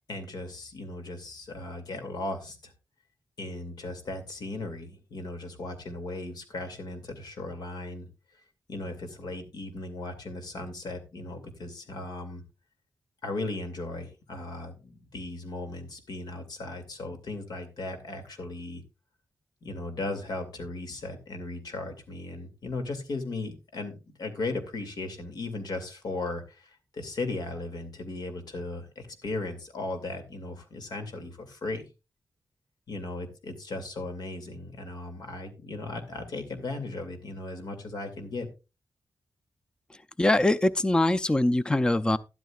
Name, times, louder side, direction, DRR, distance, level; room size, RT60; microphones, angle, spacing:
voice 1, 0.1-2.7 3.4-8.1 8.7-12.4 13.2-18.8 19.6-31.9 32.9-38.5, left 2 dB, 75° left, 2.4 m, -37 dB
voice 2, 39.9-42.2, left 1 dB, 10° left, 0.5 m, -23 dB
12.5 x 12.0 x 2.4 m
wide cardioid pair, 115°, 7 cm